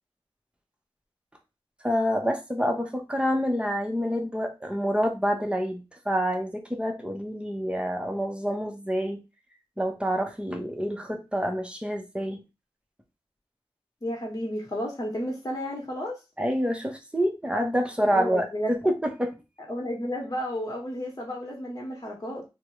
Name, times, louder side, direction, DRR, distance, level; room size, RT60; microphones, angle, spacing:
voice 1, 1.8-9.2 9.8-12.4 16.4-19.3, equal, 10° right, 3 dB, 0.6 m, -27 dB
voice 2, 14.0-16.1 18.1-18.7 19.7-22.4, equal, 35° left, 0 dB, 1.0 m, -32 dB
3.4 x 2.0 x 3.1 m, 0.27 s
wide cardioid pair, 75°, 10 cm